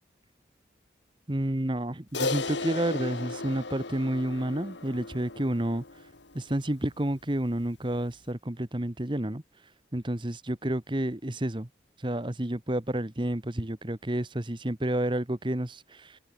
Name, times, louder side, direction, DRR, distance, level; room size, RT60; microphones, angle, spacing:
voice 1, 1.3-5.8 6.3-9.4 9.9-11.7 12.0-15.8, right 1 dB, 25° right, 1.3 m, -30 dB
Crash cymbal, 2.1-6.7, left 3 dB, 80° left, 2.5 m, -35 dB
open air
head